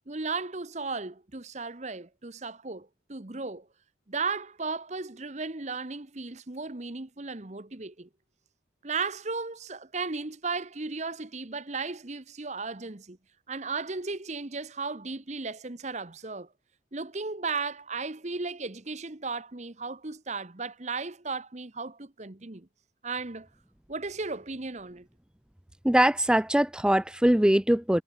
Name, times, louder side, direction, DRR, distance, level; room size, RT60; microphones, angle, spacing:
voice 1, 0.1-3.7 4.1-8.1 8.8-13.2 13.5-16.5 16.9-22.7 23.0-23.5 23.9-25.1, right 4 dB, 35° right, 1.1 m, -35 dB
voice 2, 25.8-28.0, right 1 dB, 5° right, 0.4 m, -22 dB
head